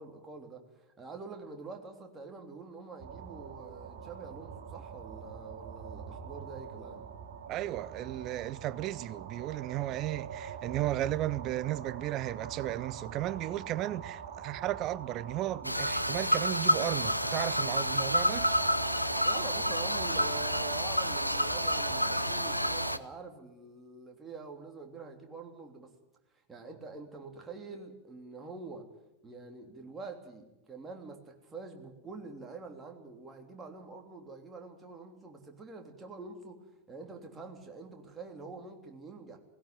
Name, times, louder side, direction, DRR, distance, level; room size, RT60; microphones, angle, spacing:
voice 1, 0.0-7.1 19.2-25.9 26.5-28.9 29.2-36.6 36.9-39.4, right 3 dB, 15° right, 3.2 m, -46 dB
sound 1, 3.0-22.9, right 7 dB, 50° right, 2.3 m, -42 dB
voice 2, 7.5-18.5, right 14 dB, 35° right, 0.7 m, -34 dB
sound 2, 15.6-23.0, equal, 90° left, 0.7 m, -29 dB
18.0 x 16.5 x 9.5 m
figure-of-eight pair, 90°, 0 cm